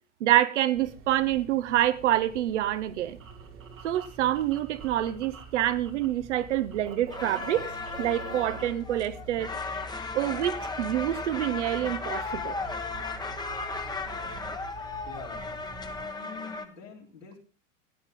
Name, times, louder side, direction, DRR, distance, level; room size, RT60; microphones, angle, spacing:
voice 1, 0.2-3.2 3.8-7.7 8.0-9.5 10.1-12.6, right 13 dB, 65° right, 14 dB, 1.2 m, -27 dB
sound 1, 0.7-16.0, right 3 dB, 35° right, 1.8 m, -47 dB
sound 2, 2.7-6.1 6.3-8.6, right 5 dB, 80° right, 2.6 m, -46 dB
sound 3, 7.1-16.6, left 4 dB, 10° left, 1.2 m, -36 dB
voice 2, 15.1-17.4, left 6 dB, 80° left, -4 dB, 3.8 m, -46 dB
16.0 x 9.9 x 3.7 m, 0.37 s
figure-of-eight pair, 90°, 39 cm